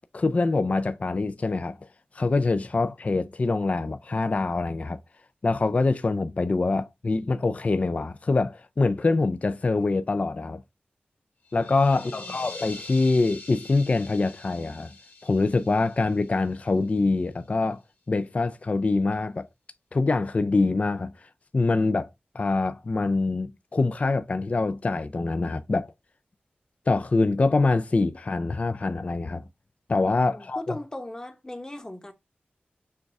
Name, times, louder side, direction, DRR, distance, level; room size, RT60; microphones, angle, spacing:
voice 1, 0.1-1.8 2.1-5.0 5.4-10.6 11.5-14.9 15.2-17.8 18.1-19.5 19.9-22.1 22.3-25.9 26.9-29.4 29.9-30.7, left 3 dB, 40° left, 0.3 m, -25 dB
sound 1, 11.5-17.1, left 3 dB, 75° left, 1.7 m, -44 dB
voice 2, 11.9-12.5 30.2-32.1, left 1 dB, 20° left, 0.9 m, -39 dB
6.5 x 2.4 x 3.1 m
wide cardioid pair, 90°, 4 cm